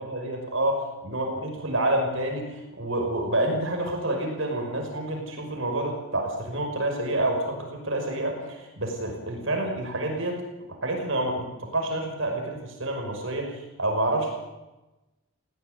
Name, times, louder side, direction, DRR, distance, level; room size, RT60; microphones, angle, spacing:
voice 1, 0.0-10.4 10.8-14.3, right 1 dB, 60° right, 2 dB, 5.8 m, -28 dB
18.0 x 17.5 x 9.5 m, 1.0 s
head